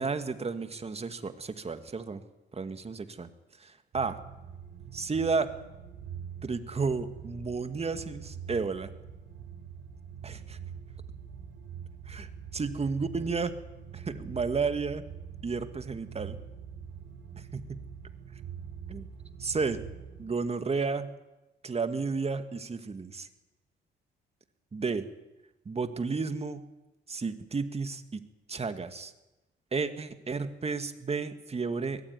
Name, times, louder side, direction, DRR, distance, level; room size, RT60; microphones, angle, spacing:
voice 1, 0.0-2.2 2.5-3.3 3.6-4.2 4.9-5.5 6.4-8.9 10.2-10.6 12.1-13.5 13.9-15.0 15.4-16.4 17.4-17.8 18.9-19.1 19.4-19.8 20.2-21.1 21.6-23.3 24.7-25.1 25.7-26.6 27.1-28.2 28.5-29.1 29.7-32.0, right 4 dB, 30° right, 9 dB, 2.3 m, -32 dB
sound 1, 3.9-20.2, right 7 dB, 70° right, 5.1 m, -44 dB
23.0 x 20.5 x 9.9 m, 1.0 s
cardioid pair, 90°, 20 cm